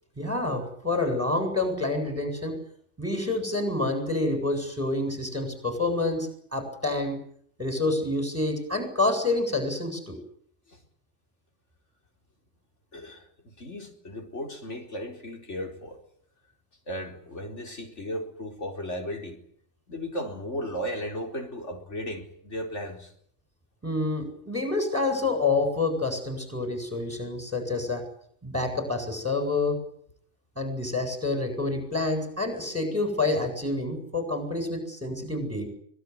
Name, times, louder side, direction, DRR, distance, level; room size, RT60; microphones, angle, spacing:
voice 1, 0.2-2.6 3.0-7.2 7.6-10.2 23.8-28.1 28.4-29.8 30.6-35.7, left 2 dB, 10° right, 8.1 m, -28 dB
voice 2, 12.9-16.0 16.9-19.4 19.9-23.1, equal, 75° left, 4.6 m, -35 dB
25.0 x 19.5 x 9.8 m
omnidirectional pair, 1.2 m